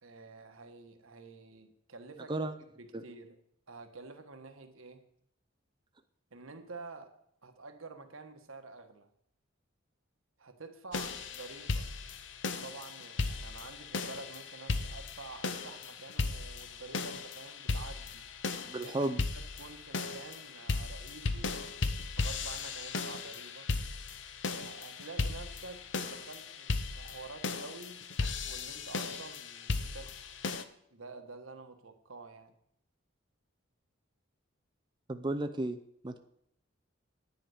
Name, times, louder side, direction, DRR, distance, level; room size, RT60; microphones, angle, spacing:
voice 1, 0.0-3.4 3.7-5.1 6.3-9.1 10.4-11.9 12.6-18.3 18.7-19.0 19.3-21.6 22.2-23.7 24.6-28.1 28.4-30.3 30.9-32.5, right 3 dB, 85° right, 1.4 m, -49 dB
sound 1, 10.9-30.6, left 4 dB, 60° left, 0.8 m, -36 dB
voice 2, 18.7-19.2 35.1-35.8 36.0-36.2, right 2 dB, 25° right, 0.5 m, -33 dB
10.5 x 9.2 x 5.0 m
head